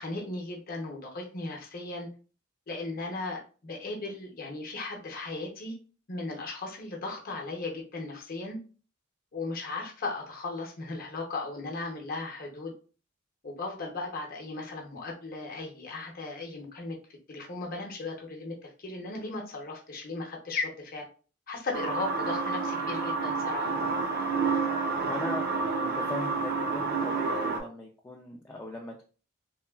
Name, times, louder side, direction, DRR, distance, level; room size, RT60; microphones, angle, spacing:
voice 1, 0.0-2.1 2.7-5.7 6.1-8.6 9.3-12.7 13.4-17.0 17.3-21.1 21.5-23.8, left 3 dB, 50° left, 1 dB, 0.7 m, -36 dB
sound 1, 21.7-27.6, right 4 dB, 50° right, 0.5 m, -29 dB
voice 2, 25.0-29.0, left 2 dB, 10° left, -1 dB, 0.3 m, -39 dB
3.2 x 2.2 x 2.2 m, 0.37 s
head